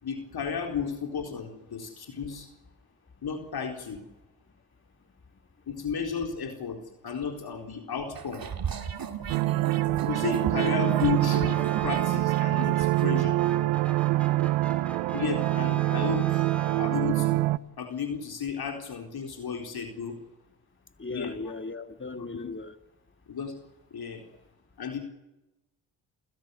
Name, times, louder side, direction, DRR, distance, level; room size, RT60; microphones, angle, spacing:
voice 1, 0.0-2.5 3.2-4.0 5.7-8.5 10.0-13.4 15.1-16.5 16.8-17.5 17.8-20.2 21.1-21.3 22.2-22.3 23.3-23.6 23.9-24.2 24.8-25.0, left 6 dB, 55° left, 4 dB, 4.1 m, -33 dB
sound 1, 8.1-13.1, right 7 dB, 50° right, 2.6 m, -35 dB
sound 2, 9.3-17.6, right 18 dB, 85° right, 0.7 m, -25 dB
sound 3, 10.8-17.3, equal, 5° left, 4.1 m, -44 dB
voice 2, 21.0-22.8, left 3 dB, 25° left, 8 dB, 2.2 m, -37 dB
29.5 x 16.0 x 6.9 m, 0.97 s
hypercardioid pair, 50°, 46 cm